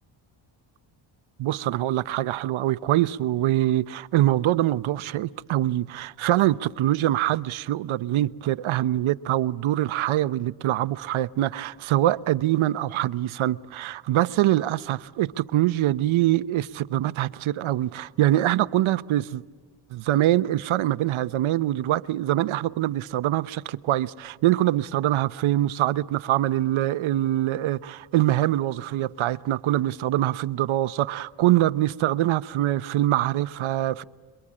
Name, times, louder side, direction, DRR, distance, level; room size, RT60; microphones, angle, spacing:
voice 1, 1.4-19.4 19.9-34.0, right 14 dB, 80° right, 0.8 m, -24 dB
27.5 x 23.0 x 8.6 m
cardioid pair, 125°, 48 cm